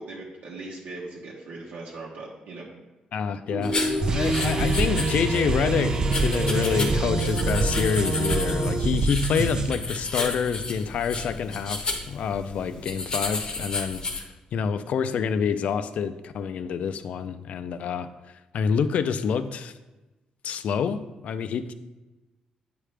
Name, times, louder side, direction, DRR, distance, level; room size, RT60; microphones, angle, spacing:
voice 1, 0.0-2.7, right 2 dB, 75° right, -4 dB, 1.1 m, -39 dB
voice 2, 3.1-3.8 4.0-18.1 18.5-19.7 20.4-21.7, left 7 dB, 65° left, 12 dB, 0.4 m, -27 dB
sound 1, 3.5-8.8, right 1 dB, ahead, 0.8 m, -31 dB
(Simulated) Pencil scribbling on paper in library study room, 3.6-14.2, left 3 dB, 35° left, 0.8 m, -33 dB
sound 2, 4.0-9.7, right 3 dB, 30° right, 0.4 m, -26 dB
8.6 x 5.0 x 3.3 m, 1.1 s
cardioid pair, 150°, 2 cm